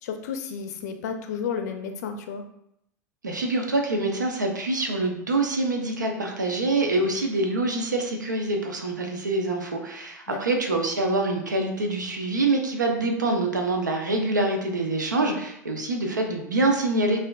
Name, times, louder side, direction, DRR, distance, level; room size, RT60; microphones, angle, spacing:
voice 1, 0.0-2.4 10.3-10.6, left 6 dB, 65° left, 7 dB, 0.4 m, -32 dB
voice 2, 3.2-17.2, right 2 dB, 90° right, 3 dB, 0.5 m, -25 dB
4.3 x 2.4 x 2.3 m, 0.76 s
hypercardioid pair, 85°, 10 cm